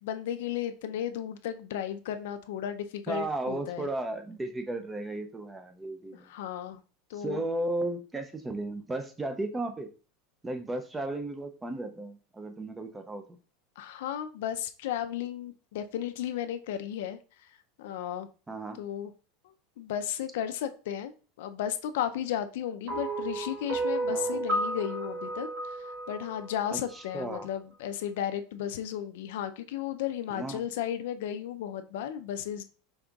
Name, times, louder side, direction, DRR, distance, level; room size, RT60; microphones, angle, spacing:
voice 1, 0.0-3.9 6.1-6.8 7.1-7.4 13.8-17.2 17.8-18.3 18.8-19.1 19.8-21.1 21.4-32.6, left 10 dB, 75° left, 9 dB, 0.4 m, -34 dB
voice 2, 3.1-6.3 7.2-9.9 10.4-13.2 18.5-18.8 24.1-24.4 26.7-26.8 27.1-27.5 30.3-30.6, right 2 dB, 10° right, 6 dB, 0.4 m, -34 dB
sound 1, 22.9-27.2, right 2 dB, 40° right, 1.1 m, -32 dB
5.2 x 3.6 x 2.3 m, 0.36 s
supercardioid pair, 165°, 0 cm